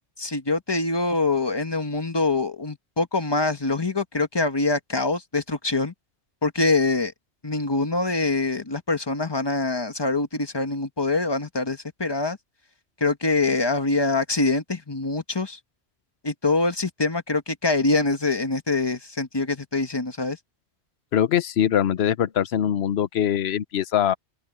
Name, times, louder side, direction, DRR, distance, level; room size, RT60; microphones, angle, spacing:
voice 1, 0.2-5.9 6.4-7.1 7.4-12.4 13.0-15.6 16.2-20.4, left 3 dB, 20° left, 1.3 m, -24 dB
voice 2, 21.1-24.1, left 10 dB, 70° left, 1.0 m, -22 dB
open air
omnidirectional pair, 1.2 m